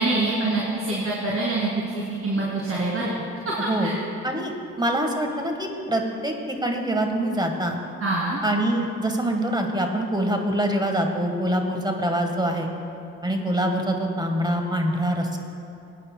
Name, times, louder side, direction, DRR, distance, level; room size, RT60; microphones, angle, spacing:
voice 1, 0.0-3.1 3.4-3.5 3.8-3.9 8.0-8.4, right 2 dB, 40° right, -6 dB, 2.3 m, -25 dB
voice 2, 4.8-7.8 8.4-12.7 13.2-15.4, right 1 dB, 15° right, 3 dB, 1.4 m, -25 dB
20.5 x 9.1 x 2.2 m, 2.6 s
supercardioid pair, 65°, 33 cm